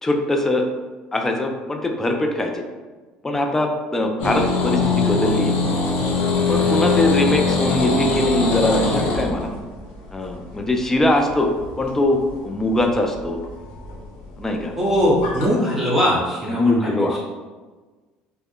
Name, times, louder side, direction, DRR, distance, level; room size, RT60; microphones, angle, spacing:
voice 1, 0.0-0.6 1.1-2.6 3.2-5.5 6.5-9.5 10.1-11.5 11.8-12.2 12.4-13.4 14.4-14.7 16.5-17.2, left 2 dB, 15° left, 3 dB, 0.3 m, -22 dB
sound 1, 4.2-15.5, left 3 dB, 80° left, 0.5 m, -22 dB
voice 2, 14.8-17.2, equal, 10° right, -7 dB, 1.0 m, -21 dB
2.2 x 2.1 x 3.6 m, 1.3 s
cardioid pair, 110°, 3 cm